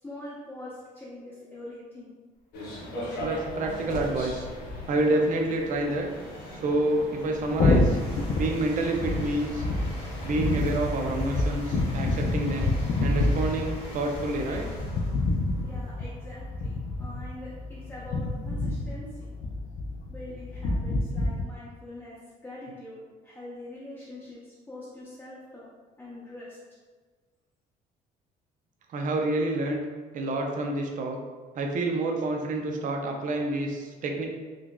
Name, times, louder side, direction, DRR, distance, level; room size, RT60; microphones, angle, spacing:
voice 1, 0.0-2.1 15.6-16.7 17.0-19.3 20.1-25.7 26.0-26.6, left 1 dB, 10° left, -9 dB, 0.8 m, -43 dB
sound 1, 2.5-14.8, left 1 dB, 80° left, 0.8 m, -41 dB
voice 2, 3.2-4.5 4.9-6.1 6.5-8.0 8.4-9.6 10.2-12.7 13.0-14.7 28.9-29.8 30.1-31.2 31.6-34.3, right 2 dB, 50° right, 2 dB, 0.5 m, -28 dB
sound 2, 4.5-19.1, left 1 dB, 35° left, 1.2 m, -43 dB
sound 3, 7.6-21.4, left 2 dB, 50° left, 0.4 m, -28 dB
3.8 x 2.3 x 2.3 m, 1.4 s
cardioid pair, 110°, 17 cm